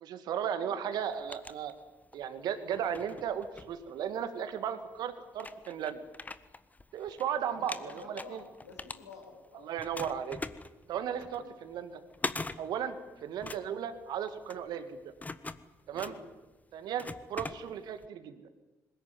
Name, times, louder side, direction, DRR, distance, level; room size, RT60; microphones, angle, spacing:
voice 1, 0.0-1.7 2.1-6.0 6.9-8.4 9.6-10.4 10.9-12.0 12.6-13.0 13.2-15.1 15.9-16.1 16.7-18.4, right 8 dB, 60° right, 10 dB, 2.3 m, -35 dB
sound 1, 0.9-2.2 2.7-4.4 5.0-5.1 5.3-7.2 7.5-9.5 9.8-18.1, left 3 dB, 20° left, 1.4 m, -42 dB
voice 2, 7.4-9.7 11.3-11.5 13.0-13.2 15.9-16.3 17.3-17.5, left 4 dB, 85° left, 1 dB, 5.0 m, -51 dB
22.0 x 20.5 x 9.6 m, 1.1 s
figure-of-eight pair, 50°, 8 cm